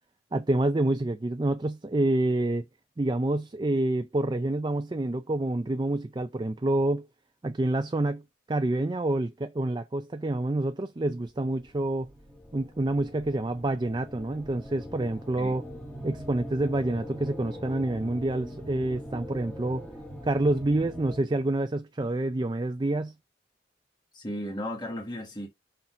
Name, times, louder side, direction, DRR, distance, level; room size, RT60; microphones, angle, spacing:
voice 1, 0.3-2.7 3.0-7.1 7.4-8.2 8.5-12.1 12.5-15.6 16.0-19.8 20.2-23.1, right 2 dB, 25° right, 0.4 m, -27 dB
sound 1, 11.3-21.2, equal, 5° left, 1.4 m, -42 dB
voice 2, 24.1-25.5, equal, 20° left, 1.3 m, -35 dB
5.7 x 4.0 x 5.8 m
head